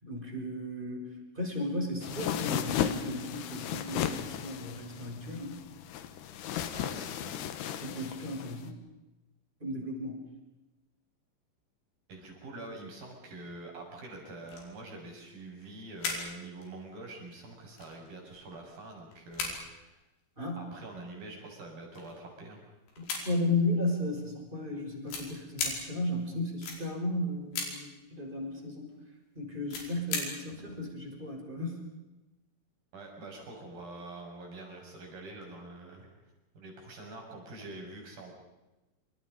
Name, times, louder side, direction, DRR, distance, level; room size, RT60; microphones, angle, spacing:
voice 1, 0.0-5.6 7.8-8.8 9.6-10.2 20.4-20.7 23.0-28.9 29.3-31.8, left 1 dB, 10° right, 1 dB, 5.9 m, -34 dB
sound 1, 2.0-8.7, left 10 dB, 70° left, 3.2 m, -35 dB
voice 2, 6.7-7.3 12.1-19.9 20.6-22.6 30.5-30.7 32.9-36.1 36.5-38.3, right 2 dB, 50° right, 0 dB, 8.2 m, -45 dB
sound 2, 14.2-14.3 14.5-14.8 15.1-16.3 16.6-16.8 17.3-17.4 17.8-18.8 19.1-20.2 21.0-21.1 21.7-22.3 22.9-23.6 24.6-24.7 25.1-25.8 26.6-26.8 27.5-27.7 29.6-30.2 30.5-30.6, left 4 dB, 85° left, 7.5 m, -36 dB
28.0 x 27.5 x 5.4 m, 1.0 s
omnidirectional pair, 5.4 m